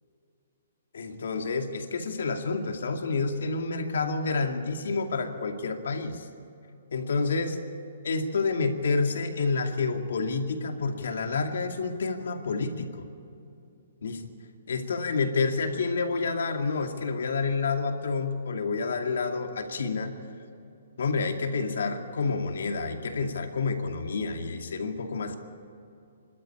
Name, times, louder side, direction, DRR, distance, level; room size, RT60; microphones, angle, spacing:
voice 1, 0.9-6.3 6.9-7.6 8.0-13.1 14.0-14.2 14.7-20.1 21.0-25.4, left 4 dB, 65° left, 4 dB, 2.3 m, -29 dB
27.5 x 12.5 x 8.6 m, 2.7 s
hypercardioid pair, 180°, 0 cm